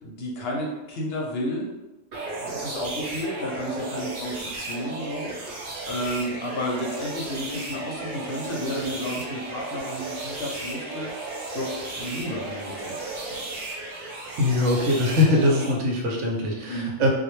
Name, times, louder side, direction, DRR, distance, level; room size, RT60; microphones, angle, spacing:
voice 1, 0.0-1.7 2.3-11.1 11.5-12.9 13.3-13.4 16.7-16.9, left 1 dB, 65° left, -1 dB, 0.7 m, -32 dB
sound 1, 2.1-15.7, right 2 dB, 60° right, 0.7 m, -34 dB
voice 2, 14.4-17.1, left 2 dB, 90° right, -1 dB, 0.9 m, -22 dB
2.2 x 2.0 x 3.0 m, 1.0 s
omnidirectional pair, 1.2 m